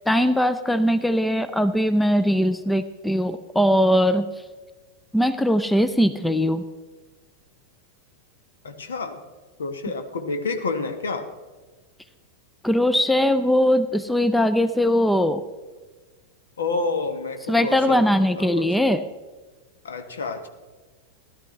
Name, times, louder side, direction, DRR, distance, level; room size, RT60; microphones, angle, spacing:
voice 1, 0.1-4.3 5.1-6.6 12.6-15.4 17.5-19.0, equal, 5° left, 12 dB, 0.5 m, -20 dB
voice 2, 8.6-9.2 9.6-11.3 16.6-18.7 19.8-20.5, left 3 dB, 65° left, 7 dB, 1.2 m, -29 dB
16.0 x 12.0 x 3.2 m, 1.3 s
figure-of-eight pair, 90°, 0 cm